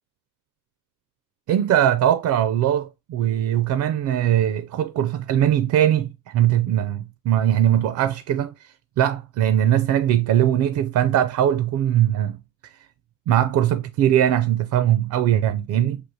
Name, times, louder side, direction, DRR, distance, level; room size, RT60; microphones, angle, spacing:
voice 1, 1.5-8.5 9.0-12.4 13.3-16.0, right 11 dB, 60° right, 0.4 m, -20 dB
6.4 x 2.4 x 2.7 m
cardioid pair, 95°, 34 cm